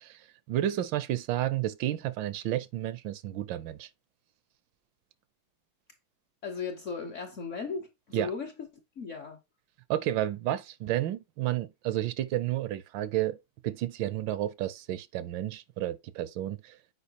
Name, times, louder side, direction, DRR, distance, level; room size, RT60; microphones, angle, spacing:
voice 1, 0.0-3.9 8.1-8.3 9.9-13.4 13.6-16.8, right 13 dB, 75° right, 1.3 m, -31 dB
voice 2, 6.4-8.7 9.0-9.4, left 5 dB, 55° left, 0.9 m, -36 dB
8.3 x 4.8 x 2.8 m
omnidirectional pair, 2.2 m